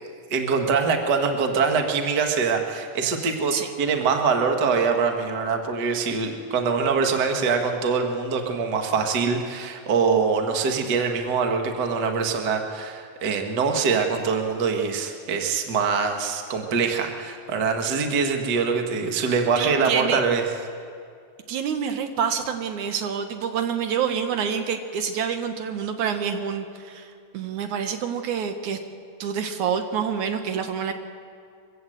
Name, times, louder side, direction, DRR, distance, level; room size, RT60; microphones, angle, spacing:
voice 1, 0.3-20.4, right 5 dB, 40° right, 4 dB, 1.8 m, -24 dB
voice 2, 19.6-20.2 21.5-28.8 29.2-30.9, right 7 dB, 75° right, 7 dB, 2.5 m, -27 dB
24.0 x 15.5 x 7.9 m, 2.3 s
omnidirectional pair, 3.6 m